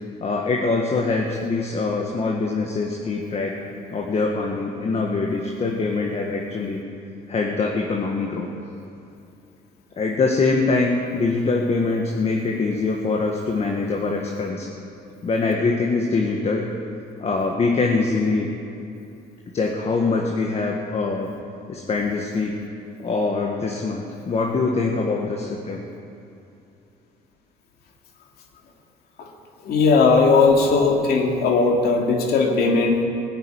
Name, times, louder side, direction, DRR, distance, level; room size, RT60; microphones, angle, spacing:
voice 1, 0.2-3.6 3.9-6.8 7.3-8.5 9.9-14.7 15.2-16.7 17.2-18.5 19.5-21.3 21.7-22.6 23.0-25.8, left 3 dB, 35° left, 0 dB, 1.7 m, -23 dB
voice 2, 29.6-33.0, left 4 dB, 70° left, 1 dB, 2.5 m, -18 dB
18.0 x 8.0 x 9.5 m, 2.7 s
cardioid pair, 110°, 17 cm